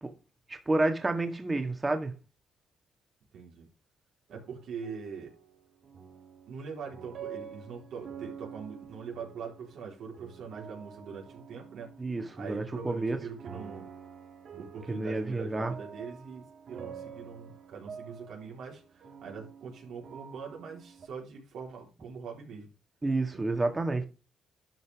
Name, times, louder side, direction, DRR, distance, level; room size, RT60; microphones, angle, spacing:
voice 1, 0.5-2.1 12.0-13.2 14.9-15.7 23.0-24.0, right 2 dB, 20° right, 1.9 m, -30 dB
voice 2, 3.3-3.7 4.3-5.3 6.5-12.0 12.4-13.9 14.5-22.7 23.3-23.6, right 6 dB, 75° right, 4.0 m, -43 dB
sound 1, 4.3-21.1, right 7 dB, 55° right, 1.9 m, -48 dB
12.0 x 5.6 x 3.6 m
cardioid pair, 90°, 0 cm